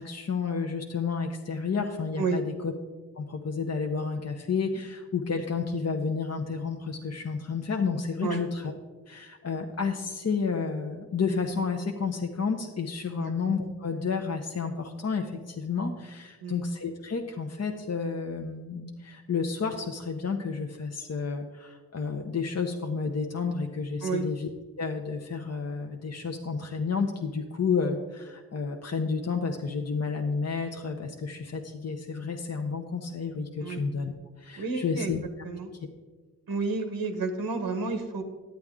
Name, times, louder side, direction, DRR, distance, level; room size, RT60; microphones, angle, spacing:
voice 1, 0.0-2.7 3.2-8.7 9.1-24.5 24.8-34.1 34.4-35.2, left 5 dB, 45° left, 3 dB, 0.8 m, -31 dB
voice 2, 34.6-35.1 35.4-35.7 36.5-38.2, right 4 dB, 85° right, 5 dB, 1.0 m, -30 dB
10.5 x 9.1 x 3.6 m, 1.4 s
cardioid pair, 40°, 36 cm